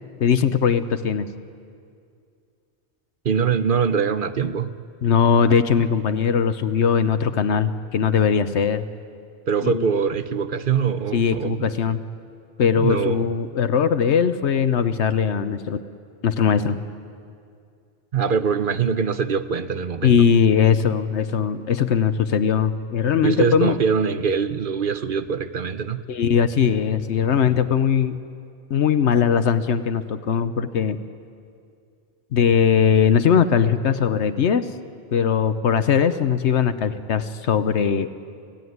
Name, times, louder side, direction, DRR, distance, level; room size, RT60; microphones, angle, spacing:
voice 1, 0.2-1.3 5.0-8.9 9.6-9.9 11.1-12.0 12.6-15.8 16.2-16.8 20.0-23.8 26.1-28.2 28.7-31.0 32.3-34.7 35.1-38.1, left 7 dB, 80° left, 11 dB, 1.1 m, -20 dB
voice 2, 3.2-4.7 9.5-11.7 12.8-13.3 18.1-20.2 23.2-26.0, right 6 dB, 55° right, 11 dB, 0.9 m, -23 dB
28.5 x 15.5 x 9.4 m, 2.3 s
omnidirectional pair, 1.2 m